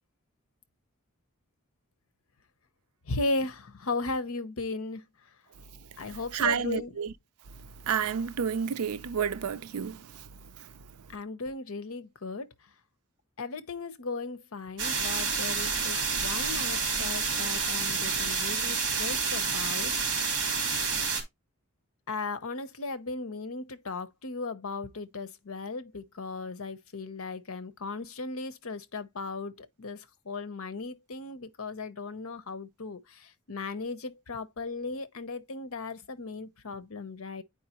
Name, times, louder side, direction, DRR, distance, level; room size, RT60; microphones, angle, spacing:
voice 1, 3.1-5.0 6.0-7.0 11.1-12.5 13.4-20.4 22.1-37.4, left 3 dB, 70° left, 0.8 m, -36 dB
voice 2, 6.3-7.1 7.8-10.1, right 7 dB, 85° right, 0.5 m, -30 dB
sound 1, 14.8-21.2, right 5 dB, 55° right, 2.9 m, -29 dB
9.3 x 4.8 x 2.9 m
head